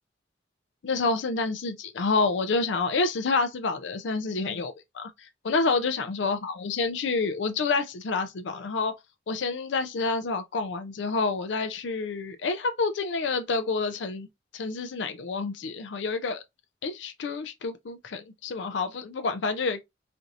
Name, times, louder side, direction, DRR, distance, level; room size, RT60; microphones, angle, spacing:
voice 1, 0.8-5.1 5.4-8.9 9.3-14.3 14.5-16.4 16.8-19.8, left 4 dB, 70° left, 0.5 m, -28 dB
4.4 x 2.5 x 2.6 m
head